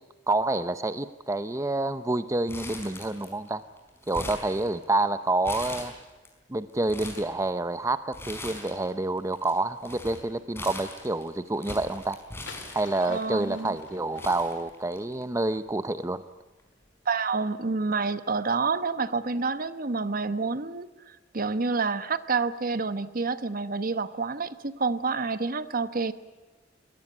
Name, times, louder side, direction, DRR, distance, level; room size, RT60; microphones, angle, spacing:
voice 1, 0.3-3.6 4.1-5.9 6.5-12.2 12.7-16.2, right 2 dB, 15° right, 12 dB, 0.7 m, -28 dB
Crumpling crinkling, 2.5-3.5 3.8-5.0 5.4-6.3 6.7-7.3 8.1-8.9 9.2-13.2 13.8-13.9 14.2-15.2 15.5-15.6 16.6-16.8, left 2 dB, 15° left, 4.8 m, -40 dB
sound 1, 12.1-15.0, left 5 dB, 85° left, 2.1 m, -47 dB
voice 2, 13.0-13.8 17.0-26.1, right 4 dB, 50° right, 13 dB, 1.1 m, -28 dB
23.0 x 18.5 x 9.9 m, 1.2 s
head